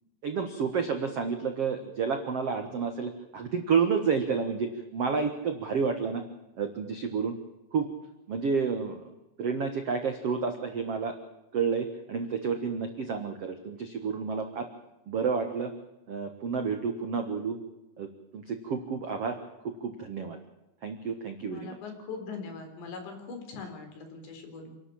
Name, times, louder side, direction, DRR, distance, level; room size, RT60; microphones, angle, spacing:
voice 1, 0.2-6.2 6.6-7.3 7.7-7.9 8.3-9.1 9.4-11.1 11.5-14.7 15.1-15.7 16.1-17.6 18.0-18.1 18.3-19.4 19.6-20.4 20.8-21.8, right 5 dB, 65° right, 6 dB, 1.5 m, -30 dB
voice 2, 21.4-24.8, left 4 dB, 75° left, 5 dB, 6.2 m, -41 dB
28.0 x 12.5 x 8.7 m, 0.97 s
omnidirectional pair, 5.1 m